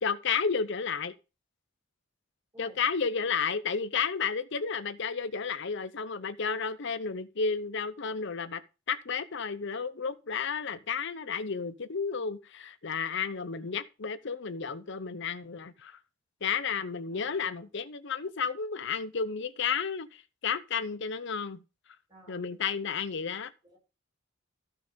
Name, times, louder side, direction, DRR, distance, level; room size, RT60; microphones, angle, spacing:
voice 1, 0.0-1.2 2.6-8.6 8.9-16.0 16.4-21.6 22.3-23.5, left 6 dB, 60° left, 0.7 m, -32 dB
voice 2, 2.5-2.9 17.1-17.7 22.1-22.7 23.6-23.8, right 1 dB, 20° right, 5.4 m, -55 dB
13.0 x 5.8 x 5.1 m
head